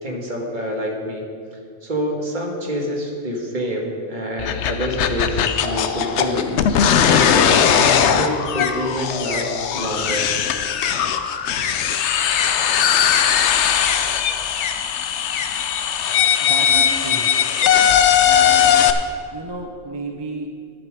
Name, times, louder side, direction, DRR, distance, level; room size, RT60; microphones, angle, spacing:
voice 1, 0.0-1.2 1.8-6.5 7.0-10.3 13.5-13.7, equal, 45° right, 0 dB, 1.7 m, -27 dB
sound 1, 4.4-18.9, left 8 dB, 85° left, 0.9 m, -19 dB
sound 2, 6.4-11.0 11.3-16.1, left 6 dB, 45° left, 0.6 m, -31 dB
voice 2, 16.4-17.3 18.2-18.8 19.3-20.5, right 2 dB, 25° right, 2 dB, 0.8 m, -32 dB
10.5 x 10.0 x 5.0 m, 2.2 s
omnidirectional pair, 1.1 m